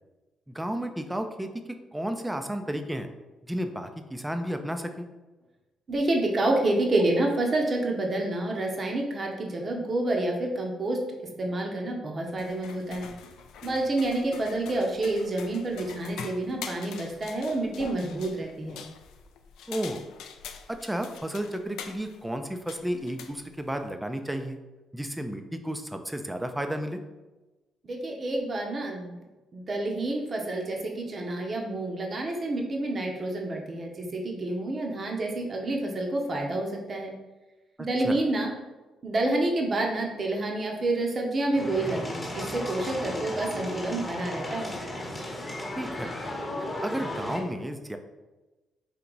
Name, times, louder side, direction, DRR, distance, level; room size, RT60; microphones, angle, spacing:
voice 1, 0.5-1.5 1.9-3.1 3.5-5.1 19.7-20.0 20.7-24.6 24.9-27.0 38.0-38.2 45.8-46.1 46.8-48.0, right 1 dB, 5° right, 7 dB, 0.5 m, -32 dB
voice 2, 5.9-13.1 13.6-18.8 27.8-29.2 29.5-37.1 37.8-38.5 39.0-44.8, right 2 dB, 40° right, 1 dB, 0.8 m, -28 dB
sound 1, 12.3-23.9, left 7 dB, 85° left, 0.3 m, -44 dB
sound 2, 41.5-47.4, left 1 dB, 20° left, 1.0 m, -35 dB
4.5 x 2.9 x 3.9 m, 1.1 s
cardioid pair, 90°, 0 cm